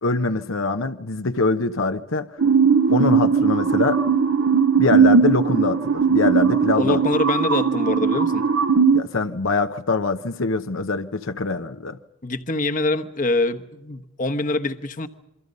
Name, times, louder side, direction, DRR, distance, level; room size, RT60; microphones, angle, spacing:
voice 1, 0.0-2.4 2.9-4.0 4.8-7.0 8.9-12.0, left 3 dB, 75° left, 0.9 m, -24 dB
sound 1, 2.4-9.0, right 5 dB, 65° right, 0.8 m, -18 dB
voice 2, 6.8-8.4 12.2-15.1, left 2 dB, 40° left, 1.1 m, -24 dB
27.5 x 24.5 x 5.4 m
head